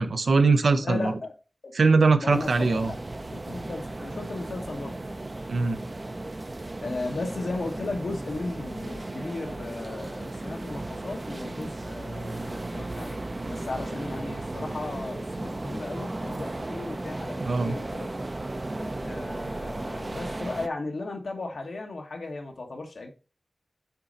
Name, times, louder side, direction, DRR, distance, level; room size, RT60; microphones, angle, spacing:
voice 1, 0.0-1.1 1.7-2.9 5.5-5.8 17.4-17.8, right 4 dB, 85° right, 0.6 m, -21 dB
voice 2, 0.8-1.3 1.6-1.7 2.2-3.0 3.3-4.9 6.8-13.2 13.5-18.1 19.0-23.1, left 2 dB, 80° left, 1.2 m, -35 dB
sound 1, 2.3-20.7, right 2 dB, 40° right, 0.5 m, -35 dB
6.8 x 4.0 x 4.0 m
cardioid pair, 45°, 0 cm